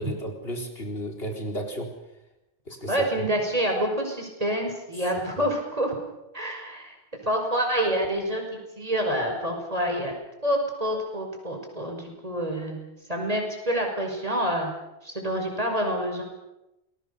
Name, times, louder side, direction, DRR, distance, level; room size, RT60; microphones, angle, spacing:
voice 1, 0.0-1.9 2.7-3.2 5.4-5.5, right 1 dB, 70° left, 2 dB, 4.4 m, -33 dB
voice 2, 2.9-5.9 6.3-6.9 7.2-10.1 10.4-14.7 15.0-16.2, right 1 dB, 35° right, 2 dB, 5.8 m, -27 dB
28.5 x 20.5 x 6.9 m, 0.93 s
omnidirectional pair, 1.0 m